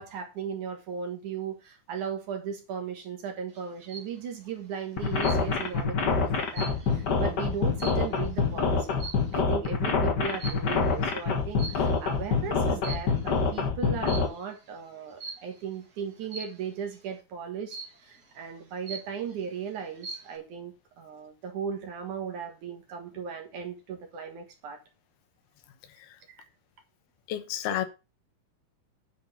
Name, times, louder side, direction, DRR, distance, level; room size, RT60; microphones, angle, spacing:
voice 1, 0.0-9.0 9.3-24.8, right 7 dB, 60° right, 2.7 m, -37 dB
sound 1, 3.5-4.2 5.2-5.7 6.1-8.4 8.9-9.4 10.4-10.8 11.6-12.2 12.7-13.4 14.1-14.4 15.2-15.6 16.3-16.7 17.7-18.2 18.6-18.7 18.9-19.5 19.8-20.4, right 4 dB, 40° right, 1.4 m, -41 dB
sound 2, 5.0-14.3, left 5 dB, 65° left, 1.0 m, -26 dB
voice 2, 27.3-27.9, left 12 dB, 85° left, 3.0 m, -30 dB
9.9 x 4.7 x 6.7 m
omnidirectional pair, 4.4 m